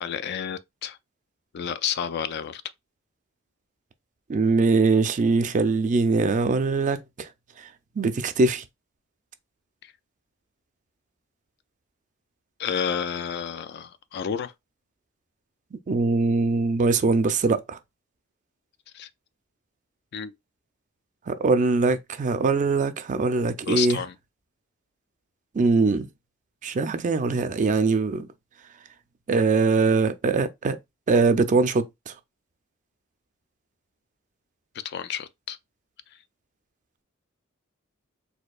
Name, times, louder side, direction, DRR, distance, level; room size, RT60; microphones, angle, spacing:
voice 1, 0.0-1.0 1.5-2.6 12.6-14.5 18.9-19.1 20.1-20.3 23.7-24.1 34.8-35.6, left 8 dB, 55° left, 0.3 m, -30 dB
voice 2, 4.3-7.3 8.0-8.6 15.9-17.8 21.3-24.0 25.5-26.1 26.6-28.3 29.3-30.8 31.1-32.1, right 4 dB, 40° right, 0.4 m, -22 dB
4.3 x 2.7 x 2.3 m
head